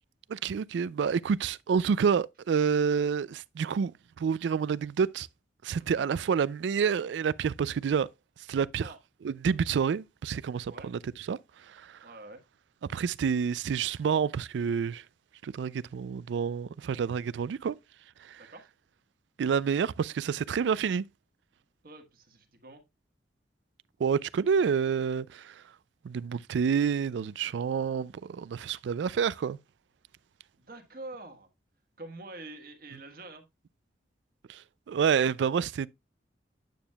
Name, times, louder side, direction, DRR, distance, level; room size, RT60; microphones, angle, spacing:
voice 1, 0.3-3.9 4.2-5.3 5.6-8.1 8.5-8.9 9.2-11.0 11.3-11.4 11.7-12.0 12.9-15.0 15.4-17.7 18.2-18.4 19.4-21.0 24.0-25.5 26.0-29.6 34.5-34.6 34.9-35.9, right 6 dB, 85° right, 0.3 m, -28 dB
voice 2, 12.0-12.4 18.4-18.7 21.8-22.8 30.6-31.5 32.0-33.4, right 2 dB, 50° right, 1.5 m, -46 dB
9.2 x 6.9 x 2.2 m
head